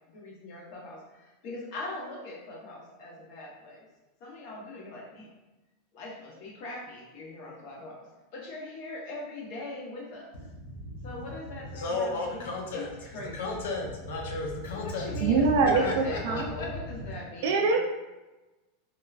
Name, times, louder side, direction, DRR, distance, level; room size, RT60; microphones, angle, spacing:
voice 1, 0.1-3.9 4.2-5.3 5.9-10.4 11.0-13.7 14.7-17.7, left 2 dB, 45° left, -2 dB, 0.8 m, -41 dB
voice 2, 10.5-11.1 11.7-12.9 13.3-17.1, left 2 dB, 80° left, 0 dB, 0.6 m, -34 dB
voice 3, 15.2-16.5 17.4-17.8, right 4 dB, 60° right, 2 dB, 0.3 m, -24 dB
3.1 x 2.2 x 2.4 m, 1.1 s
supercardioid pair, 165°, 0 cm